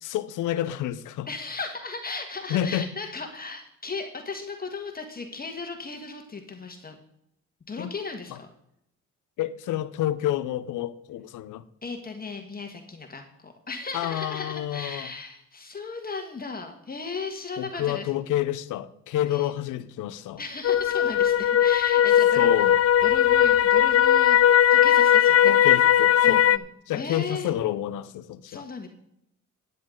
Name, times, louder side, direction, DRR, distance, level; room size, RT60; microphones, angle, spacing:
voice 1, 0.0-1.3 2.5-2.9 7.8-7.9 9.4-11.6 13.9-15.1 17.6-20.4 22.4-22.8 25.4-26.4 26.9-28.6, left 12 dB, 85° left, 0.7 m, -29 dB
voice 2, 1.3-7.0 7.7-8.5 11.8-18.1 19.3-19.5 20.4-22.5 23.0-24.4 24.7-25.5 26.2-26.6 26.9-27.5 28.5-28.9, left 4 dB, 30° left, 1.6 m, -36 dB
sound 1, 20.6-26.6, left 10 dB, 50° left, 0.5 m, -18 dB
13.5 x 9.4 x 3.8 m
cardioid pair, 90°, 30 cm